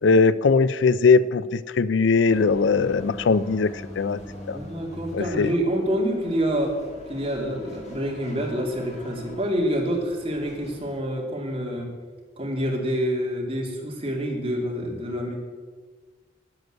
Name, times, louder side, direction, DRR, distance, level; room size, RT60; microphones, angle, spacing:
voice 1, 0.0-4.2 4.5-4.6 5.1-5.5, left 4 dB, 70° left, 17 dB, 0.4 m, -20 dB
sound 1, 2.3-11.0, left 2 dB, 40° left, 2.9 m, -42 dB
voice 2, 4.5-6.7 7.1-11.9 12.4-15.4, equal, 30° right, -1 dB, 3.0 m, -27 dB
10.5 x 9.3 x 7.9 m, 1.5 s
head